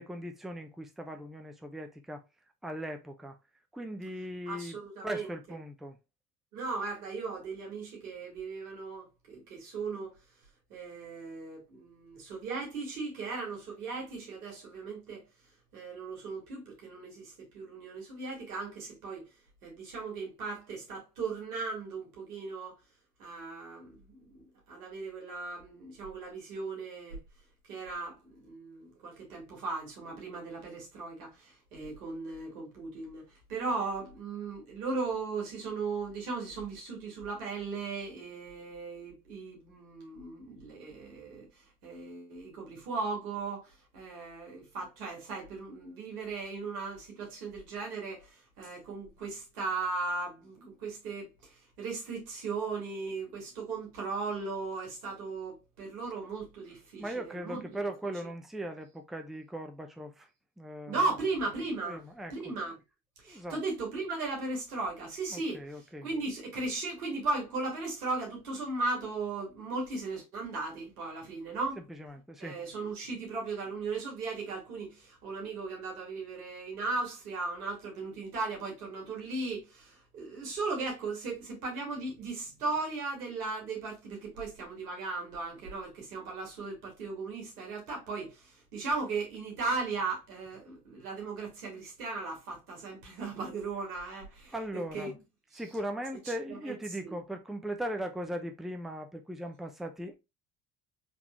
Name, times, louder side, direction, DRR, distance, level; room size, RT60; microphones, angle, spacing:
voice 1, 0.0-2.2 2.6-3.4 3.7-6.0 57.0-60.3 60.6-61.1 61.8-62.5 63.2-63.6 65.3-66.1 71.8-72.6 94.5-95.1 95.5-100.2, right 1 dB, ahead, 0.8 m, -39 dB
voice 2, 4.5-5.3 6.5-10.1 10.7-15.2 15.7-19.2 19.6-22.8 23.2-24.4 24.7-27.2 27.7-41.5 41.8-57.8 60.9-62.0 62.3-62.7 63.2-71.8 72.4-95.1 95.5-95.6 96.5-96.8 97.0-97.2, right 3 dB, 85° right, 2.1 m, -37 dB
4.1 x 3.5 x 3.1 m
hypercardioid pair, 60°, 44 cm